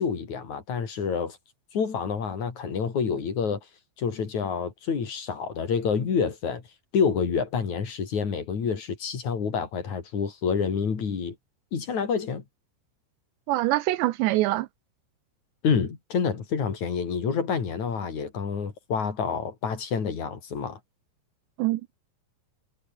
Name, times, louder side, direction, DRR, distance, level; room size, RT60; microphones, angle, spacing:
voice 1, 0.0-1.4 1.7-3.6 4.0-6.6 6.9-11.4 11.7-12.4 15.6-20.8, left 6 dB, 40° left, 4.4 m, -28 dB
voice 2, 13.5-14.7 21.6-21.8, right 17 dB, 80° right, 2.8 m, -24 dB
omnidirectional pair, 5.4 m